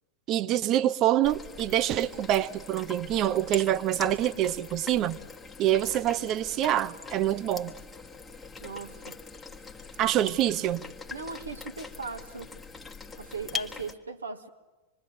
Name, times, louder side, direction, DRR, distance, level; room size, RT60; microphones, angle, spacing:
voice 1, 0.3-5.2 5.6-7.7 10.0-10.8, right 12 dB, 35° right, 0.8 m, -26 dB
sound 1, 1.2-13.9, left 5 dB, 10° left, 1.5 m, -42 dB
voice 2, 8.6-9.2 10.2-10.3 11.1-12.5 13.2-14.5, right 4 dB, 75° right, 1.4 m, -38 dB
26.0 x 22.0 x 8.4 m
figure-of-eight pair, 90°, 0 cm